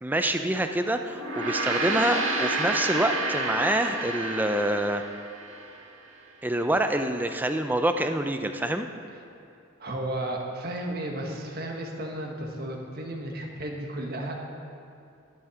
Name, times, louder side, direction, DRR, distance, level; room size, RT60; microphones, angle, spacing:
voice 1, 0.0-5.0 6.4-8.9, right 1 dB, 10° right, 7 dB, 0.4 m, -26 dB
Gong, 1.1-5.7, right 2 dB, 80° right, 1.5 m, -29 dB
voice 2, 9.8-14.3, right 1 dB, 50° right, 2 dB, 1.4 m, -33 dB
11.5 x 11.0 x 4.9 m, 2.6 s
head